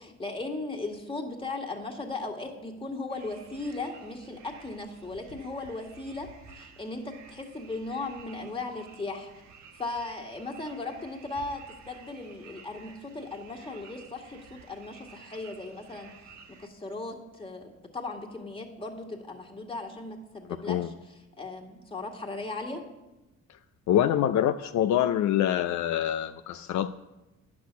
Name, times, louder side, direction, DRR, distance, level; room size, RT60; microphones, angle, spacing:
voice 1, 0.0-6.3 6.5-9.3 9.8-16.1 16.6-20.9 21.4-22.8, left 2 dB, 15° left, 1 dB, 2.0 m, -37 dB
sound 1, 3.1-16.7, right 5 dB, 65° right, 1.3 m, -52 dB
voice 2, 20.5-20.9 23.9-26.9, left 11 dB, 70° left, 9 dB, 0.5 m, -25 dB
10.5 x 6.2 x 8.3 m, 1.0 s
cardioid pair, 90°, 30 cm